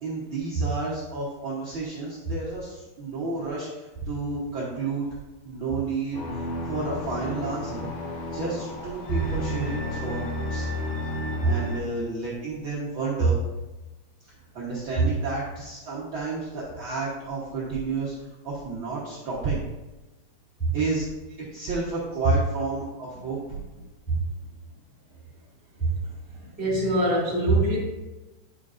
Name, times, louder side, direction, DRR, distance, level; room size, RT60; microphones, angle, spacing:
voice 1, 0.0-5.1 5.4-7.9 8.3-10.2 10.5-10.7 11.4-13.4 14.5-19.6 20.7-21.0 21.4-23.4, right 3 dB, 75° right, -7 dB, 1.1 m, -31 dB
sound 1, 6.1-11.8, left 1 dB, 80° left, 1.3 m, -32 dB
voice 2, 26.4-27.8, right 2 dB, 5° right, -6 dB, 1.2 m, -23 dB
8.8 x 5.1 x 2.5 m, 1.1 s
omnidirectional pair, 4.0 m